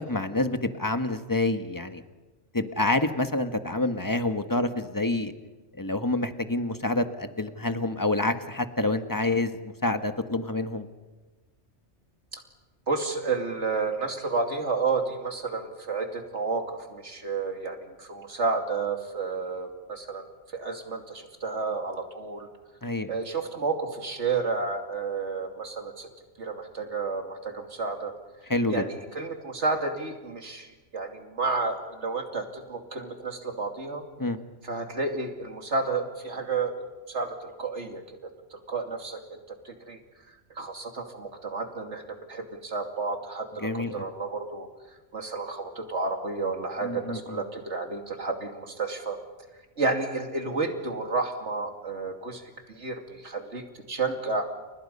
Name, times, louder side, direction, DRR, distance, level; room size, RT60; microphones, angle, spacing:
voice 1, 0.1-2.0 2.5-5.3 5.8-9.5 9.8-10.9 22.8-23.1 28.5-28.8 34.2-34.4 43.6-44.1 46.8-47.4, left 2 dB, 15° left, 8 dB, 1.4 m, -27 dB
voice 2, 12.9-20.2 20.5-22.5 23.1-26.1 26.4-28.1 28.7-34.0 34.6-36.8 37.1-40.0 40.3-44.7 45.1-49.2 49.8-54.5, right 4 dB, 70° right, 4 dB, 3.0 m, -31 dB
30.0 x 29.5 x 5.5 m, 1.2 s
omnidirectional pair, 1.2 m